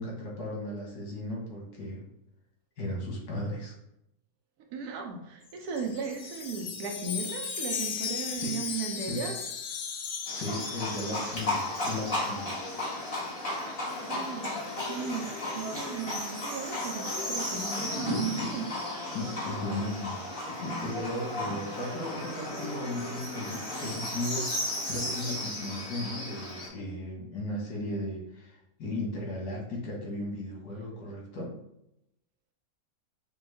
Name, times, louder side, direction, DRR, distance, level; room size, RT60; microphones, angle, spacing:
voice 1, 0.0-2.0 2.8-3.7 8.3-8.6 9.0-9.4 10.3-12.5 19.1-20.3 20.8-31.5, left 1 dB, 85° left, -2 dB, 1.6 m, -36 dB
voice 2, 4.7-9.3 13.7-13.8 14.0-14.5 14.9-15.3 15.5-18.7, right 5 dB, 80° right, 2 dB, 1.2 m, -36 dB
Wind chime, 5.5-11.7, left 6 dB, 65° left, 0.7 m, -36 dB
Livestock farm animals working animals, 10.2-26.7, left 1 dB, 40° left, 1.5 m, -34 dB
5.2 x 2.3 x 3.3 m, 0.81 s
omnidirectional pair, 1.6 m